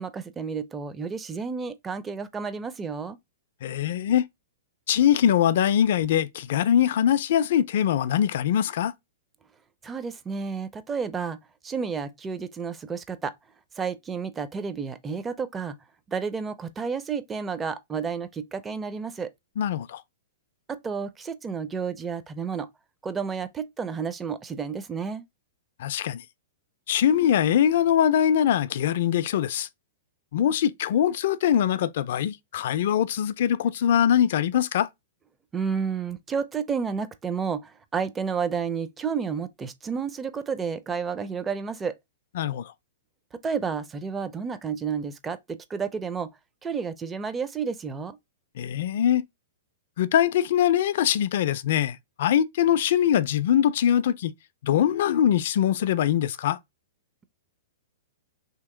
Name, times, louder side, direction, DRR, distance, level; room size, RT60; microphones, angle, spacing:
voice 1, 0.0-3.2 9.8-11.4 11.6-13.3 13.8-15.8 16.1-19.3 20.7-22.7 23.0-25.2 35.5-42.0 43.3-46.3 46.6-48.2, right 6 dB, 15° right, 0.4 m, -31 dB
voice 2, 3.6-4.3 4.9-8.9 19.6-20.0 25.8-26.2 26.9-29.7 30.3-34.9 42.4-42.7 48.6-49.2 50.0-54.3 54.6-56.6, left 10 dB, 60° left, 0.3 m, -22 dB
3.0 x 2.8 x 3.6 m
hypercardioid pair, 125°, 0 cm